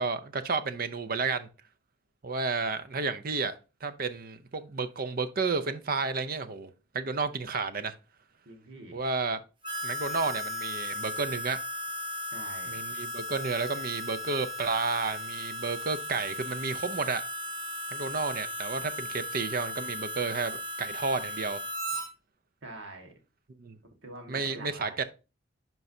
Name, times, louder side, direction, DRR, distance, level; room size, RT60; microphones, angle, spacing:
voice 1, 0.0-1.5 2.2-7.9 8.9-9.4 9.8-11.6 12.7-17.2 17.9-21.6 23.6-23.8 24.3-25.0, right 4 dB, 45° right, 0.6 m, -31 dB
voice 2, 8.4-9.0 12.3-12.7 22.6-23.1 24.0-25.0, right 2 dB, 70° right, 1.6 m, -45 dB
Harmonica, 9.6-22.1, left 1 dB, 25° right, 0.9 m, -36 dB
11.0 x 4.6 x 2.7 m
head